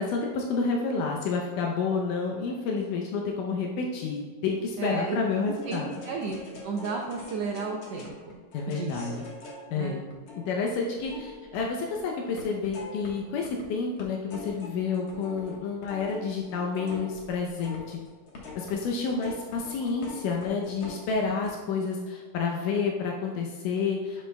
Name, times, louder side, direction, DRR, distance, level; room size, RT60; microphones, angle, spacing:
voice 1, 0.0-5.9 8.5-9.3 9.7-10.0 10.5-18.0 18.6-24.3, left 4 dB, 80° left, 0 dB, 2.3 m, -29 dB
voice 2, 4.8-5.2 5.4-6.4 6.6-8.1 8.7-9.2 9.7-10.0, right 4 dB, 85° right, 0 dB, 1.4 m, -33 dB
sound 1, 5.6-12.0 12.4-13.6 14.0-21.5, left 3 dB, 55° left, 1.7 m, -44 dB
10.5 x 7.0 x 2.2 m, 1.4 s
omnidirectional pair, 3.8 m